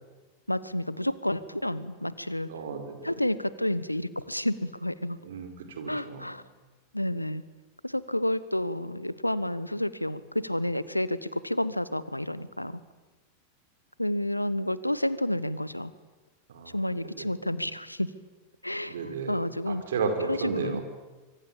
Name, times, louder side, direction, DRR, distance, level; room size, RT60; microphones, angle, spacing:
voice 1, 0.5-2.5 3.0-5.2 5.9-6.4 6.9-7.4 7.8-12.8 14.0-15.9 16.7-18.1 18.6-19.8 20.2-20.8, left 1 dB, 85° left, 17 dB, 1.1 m, -30 dB
voice 2, 2.5-3.2 5.2-6.3 16.5-16.8 17.0-17.3 18.9-19.4 19.7-20.8, right 5 dB, 60° right, 6 dB, 4.5 m, -33 dB
25.0 x 25.0 x 8.7 m, 1.2 s
figure-of-eight pair, 90°, 0 cm